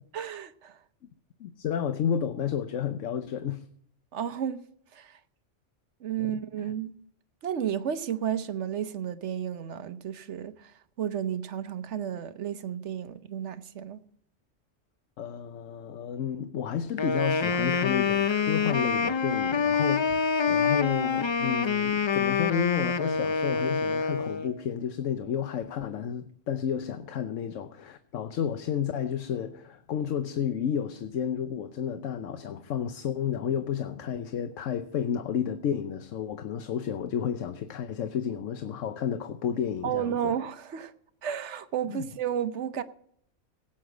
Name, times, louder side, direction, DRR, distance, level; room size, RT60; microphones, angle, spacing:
voice 1, 0.1-0.8 4.1-4.6 4.9-5.2 6.0-6.9 7.4-10.7 11.0-14.0 39.8-40.9 41.2-42.8, right 9 dB, 70° right, 1.1 m, -32 dB
voice 2, 1.4-3.6 6.2-6.7 15.2-40.3 41.9-42.1, left 8 dB, 85° left, 1.1 m, -31 dB
Wind instrument woodwind instrument, 17.0-24.6, left 5 dB, 45° left, 0.3 m, -26 dB
17.0 x 8.7 x 5.0 m
omnidirectional pair, 1.3 m